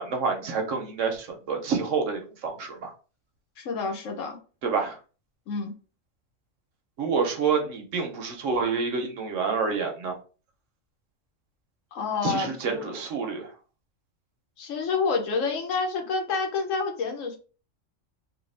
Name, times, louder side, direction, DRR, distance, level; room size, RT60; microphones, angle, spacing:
voice 1, 0.0-2.9 4.6-5.0 7.0-10.2 12.2-13.5, right 5 dB, 75° right, 3 dB, 1.1 m, -28 dB
voice 2, 3.6-4.4 5.5-5.7 11.9-12.9 14.6-17.4, left 4 dB, 80° left, 3 dB, 1.2 m, -28 dB
3.2 x 2.4 x 3.3 m, 0.37 s
omnidirectional pair, 1.3 m